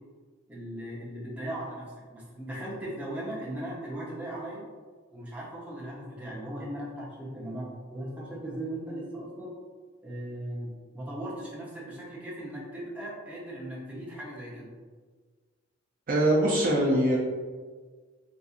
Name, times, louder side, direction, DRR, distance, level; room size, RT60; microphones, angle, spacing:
voice 1, 0.5-4.6 5.1-9.5 10.0-14.7, right 1 dB, 10° right, -7 dB, 0.8 m, -38 dB
voice 2, 16.1-17.2, right 1 dB, 45° right, -3 dB, 0.5 m, -23 dB
4.0 x 2.6 x 2.4 m, 1.5 s
head